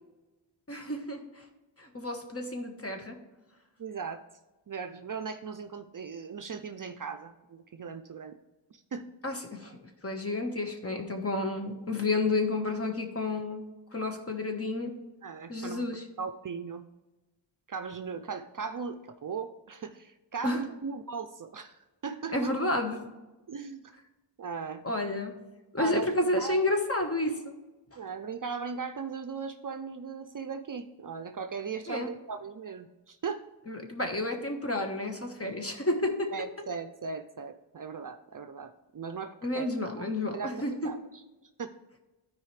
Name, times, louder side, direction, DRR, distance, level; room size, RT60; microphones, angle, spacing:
voice 1, 0.7-1.2 1.8-3.2 9.2-9.8 10.0-13.6 13.9-14.9 15.5-16.0 20.4-20.6 22.3-23.0 24.8-25.3 25.7-27.6 27.9-28.0 31.9-32.1 33.7-36.3 39.4-40.7, left 2 dB, 30° left, 4 dB, 1.3 m, -30 dB
voice 2, 3.8-4.2 4.7-8.3 8.7-9.1 15.2-15.9 16.2-16.8 17.7-22.5 23.5-23.9 24.4-24.8 25.8-26.0 26.3-26.6 28.0-33.4 36.3-39.7 40.0-41.2 41.6-41.7, right 5 dB, 45° right, 9 dB, 0.5 m, -38 dB
12.5 x 4.8 x 3.3 m, 1.1 s
wide cardioid pair, 75°, 47 cm